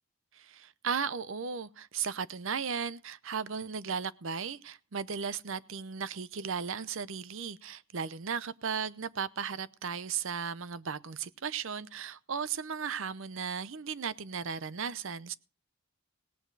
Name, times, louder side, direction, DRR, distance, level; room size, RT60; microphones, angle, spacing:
voice 1, 0.3-15.3, right 6 dB, 60° right, 17 dB, 0.7 m, -36 dB
17.5 x 9.1 x 4.6 m, 0.34 s
head